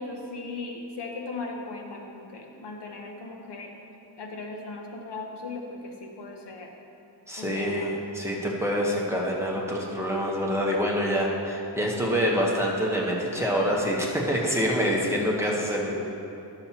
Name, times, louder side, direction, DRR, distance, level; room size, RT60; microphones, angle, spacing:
voice 1, 0.0-3.7 4.2-6.7 7.4-7.9, left 3 dB, 70° left, 2 dB, 1.0 m, -38 dB
voice 2, 7.3-16.0, equal, 5° right, -3 dB, 1.0 m, -26 dB
11.5 x 7.0 x 2.9 m, 2.7 s
wide cardioid pair, 125°, 42 cm